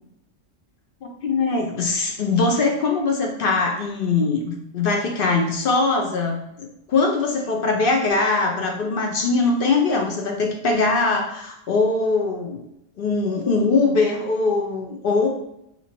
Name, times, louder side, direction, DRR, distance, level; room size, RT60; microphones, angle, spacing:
voice 1, 1.2-12.6 13.0-15.3, left 3 dB, 55° left, 2 dB, 0.7 m, -21 dB
2.8 x 2.7 x 4.3 m, 0.79 s
omnidirectional pair, 1.4 m